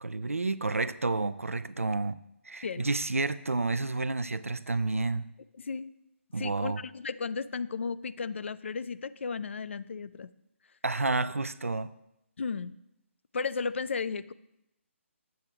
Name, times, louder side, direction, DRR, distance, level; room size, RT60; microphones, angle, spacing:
voice 1, 0.0-2.2 2.5-5.3 6.3-6.8 10.8-11.9, right 3 dB, 85° right, 15 dB, 0.4 m, -30 dB
voice 2, 5.6-5.9 6.4-10.3 12.4-12.7 13.3-14.3, left 5 dB, 60° left, 16 dB, 0.3 m, -34 dB
7.7 x 7.5 x 3.3 m, 0.85 s
figure-of-eight pair, 145°, 7 cm